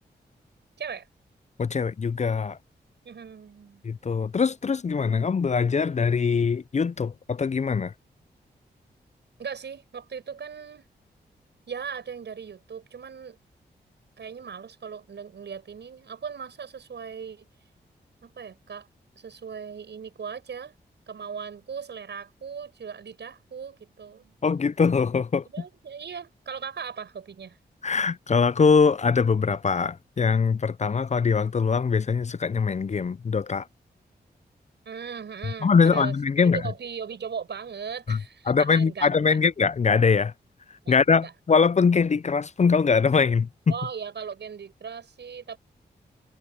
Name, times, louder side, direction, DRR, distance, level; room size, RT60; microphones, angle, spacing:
voice 1, 1.6-2.6 3.8-7.9 24.4-25.5 27.8-33.7 35.6-36.6 38.1-38.2 38.5-40.3 40.9-43.5, left 5 dB, 40° left, 0.5 m, -22 dB
voice 2, 3.0-3.8 9.4-10.9 11.7-13.4 14.2-17.5 18.2-18.9 19.2-20.7 21.1-24.4 25.5-27.6 34.9-39.4 40.8-41.3 43.7-45.6, right 6 dB, 75° right, 7.2 m, -38 dB
cardioid pair, 45°, 18 cm